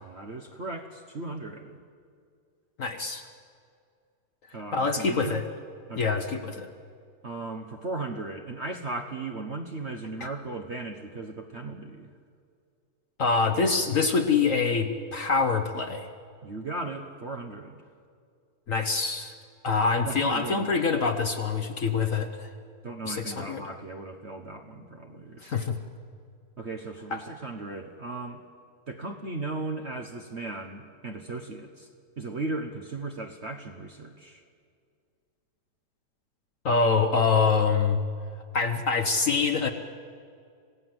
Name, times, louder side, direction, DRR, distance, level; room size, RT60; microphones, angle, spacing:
voice 1, 0.0-1.8 4.5-5.4 5.9-6.2 7.2-12.1 16.4-17.8 20.0-20.7 22.8-25.6 26.6-28.4 28.9-31.9 32.2-34.4, right 3 dB, 45° right, 3 dB, 1.4 m, -37 dB
voice 2, 2.8-3.3 4.7-5.5 6.0-6.7 10.2-10.3 13.2-16.1 18.7-19.3 19.6-22.5 23.0-23.7 25.4-25.8 27.1-27.2 36.6-38.0 38.5-39.7, left 4 dB, 55° left, 5 dB, 1.4 m, -25 dB
27.0 x 17.0 x 7.9 m, 2.2 s
omnidirectional pair, 1.8 m